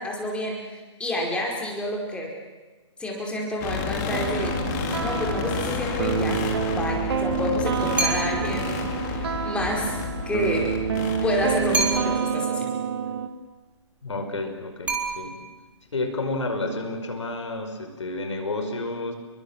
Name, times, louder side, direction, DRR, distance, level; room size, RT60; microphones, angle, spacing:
voice 1, 0.0-2.3 3.0-4.6 5.0-10.0 10.2-10.8 11.2-12.7, left 1 dB, 5° left, -1 dB, 5.1 m, -29 dB
sound 1, 3.6-12.2, left 6 dB, 35° left, 3.7 m, -31 dB
sound 2, 4.1-13.3, right 7 dB, 55° right, 2.0 m, -28 dB
sound 3, 8.0-8.6 11.7-12.4 14.9-15.7, right 3 dB, 10° right, 3.9 m, -28 dB
voice 2, 14.0-15.4 15.9-19.1, left 2 dB, 70° left, 6 dB, 5.2 m, -30 dB
29.5 x 23.5 x 7.5 m, 1.3 s
figure-of-eight pair, 130°, 16 cm